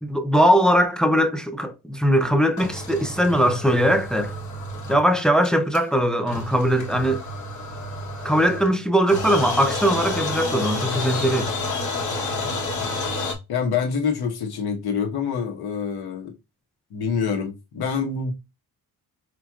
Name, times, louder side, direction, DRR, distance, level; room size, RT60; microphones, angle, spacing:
voice 1, 0.0-4.3 4.9-7.2 8.2-11.5, equal, ahead, 0.3 m, -20 dB
sound 1, 2.6-5.2 5.4-5.5 5.7-5.8 6.3-8.8 9.1-13.3, left 2 dB, 50° left, 1.1 m, -30 dB
voice 2, 13.5-16.3 16.9-18.3, left 6 dB, 80° left, 1.1 m, -26 dB
5.0 x 3.0 x 2.3 m
wide cardioid pair, 160°, 38 cm